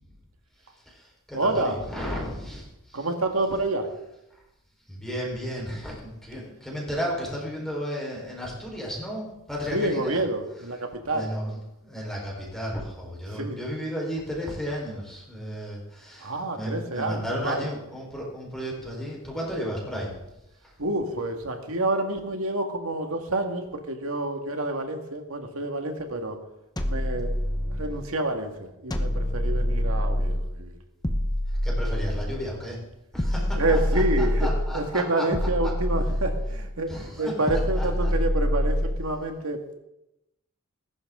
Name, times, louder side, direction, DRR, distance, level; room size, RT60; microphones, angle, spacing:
voice 1, 0.7-3.1 4.9-10.2 11.1-20.2 20.6-20.7 31.6-32.8 33.1-35.2 36.9-38.1, equal, ahead, -3 dB, 4.4 m, -33 dB
voice 2, 1.3-1.8 2.9-3.9 9.7-11.3 13.3-13.6 16.2-17.7 20.8-26.4 26.8-27.3 27.7-30.8 33.6-39.7, right 2 dB, 70° right, 4 dB, 2.0 m, -28 dB
sound 1, 26.8-28.1 28.9-30.5 31.0-32.5 33.2-34.8 35.3-36.7 37.5-39.1, equal, 20° left, 1.0 m, -26 dB
20.0 x 11.5 x 3.8 m, 0.89 s
head